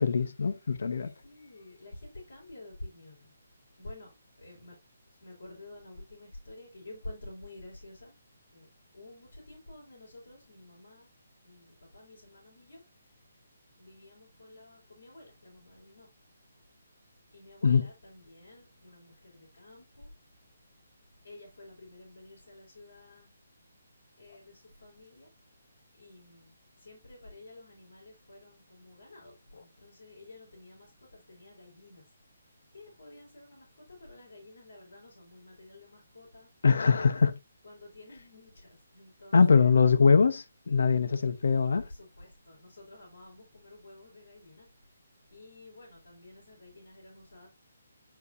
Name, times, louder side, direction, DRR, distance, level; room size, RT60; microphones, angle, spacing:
voice 1, 0.0-1.1 17.6-17.9 36.6-37.4 39.3-41.8, left 5 dB, 70° left, 0.9 m, -23 dB
voice 2, 1.2-3.3 3.8-4.8 5.2-8.1 8.5-8.7 8.9-11.1 11.4-12.8 13.8-16.1 17.3-20.1 21.2-23.3 24.2-25.3 26.0-26.5 26.8-32.0 32.7-36.5 37.6-39.8 41.2-44.7 45.3-47.5, left 2 dB, 85° left, 4.5 m, -50 dB
10.5 x 4.6 x 2.6 m
hypercardioid pair, 160°, 0 cm